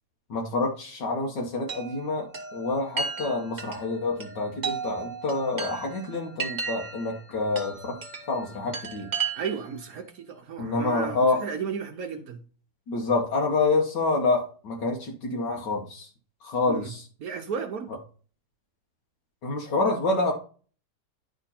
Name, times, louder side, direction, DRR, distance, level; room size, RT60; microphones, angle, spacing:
voice 1, 0.3-2.3 2.5-8.0 8.3-9.1 10.6-11.4 12.9-16.1 16.4-17.0 19.4-20.3, left 3 dB, 75° left, 1.9 m, -27 dB
Chime, 1.7-9.8, right 5 dB, 30° right, 0.9 m, -35 dB
voice 2, 9.3-12.4 16.7-16.9 17.2-17.9, right 6 dB, 60° right, 1.1 m, -34 dB
11.0 x 3.7 x 4.2 m
omnidirectional pair, 1.9 m